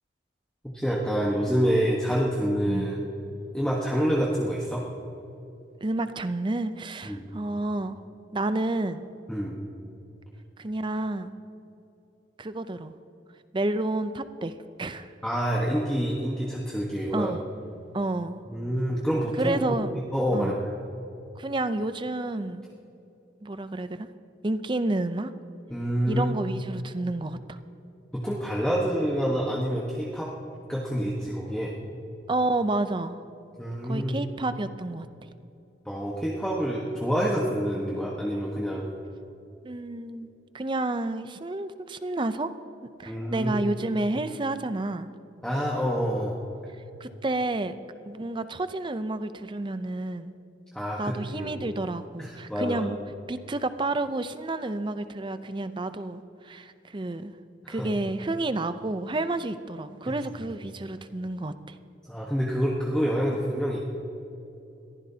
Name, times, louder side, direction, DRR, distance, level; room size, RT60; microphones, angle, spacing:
voice 1, 0.7-3.0 3.5-4.9 7.0-7.3 9.3-9.6 15.2-17.3 18.5-19.8 20.1-20.7 25.7-26.4 28.1-30.3 30.7-31.7 33.6-34.1 35.8-38.8 43.1-43.5 45.4-46.4 50.7-51.5 52.2-52.9 57.6-57.9 62.1-63.8, equal, 5° left, -4 dB, 1.2 m, -27 dB
voice 2, 5.8-8.0 8.3-9.0 10.6-11.3 12.4-12.9 13.5-14.5 14.8-15.1 17.1-17.4 17.9-18.4 19.4-19.9 20.3-20.6 21.4-22.7 23.4-24.1 24.4-25.3 26.1-27.6 32.3-33.2 33.8-35.3 39.6-40.3 40.5-42.5 42.8-45.1 47.0-47.7 48.1-50.3 51.0-53.0 53.3-57.3 57.7-61.8, right 2 dB, 25° right, 12 dB, 0.5 m, -30 dB
22.0 x 15.0 x 2.8 m, 2.8 s
head